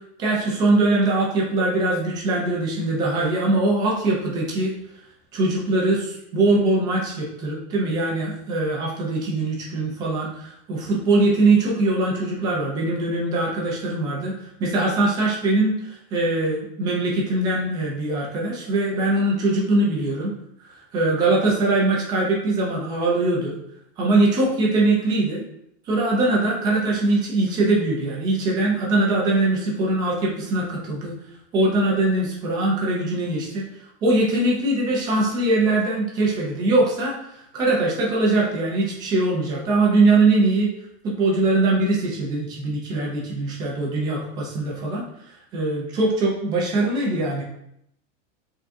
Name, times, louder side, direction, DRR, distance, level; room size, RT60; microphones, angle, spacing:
voice 1, 0.2-4.7 5.3-14.3 14.6-20.3 20.9-23.6 24.0-25.4 25.9-31.1 31.5-33.6 34.0-37.2 37.5-40.7 41.0-45.0 45.5-47.4, right 2 dB, 10° right, -3 dB, 0.3 m, -22 dB
5.6 x 3.7 x 2.5 m, 0.77 s
supercardioid pair, 175°, 37 cm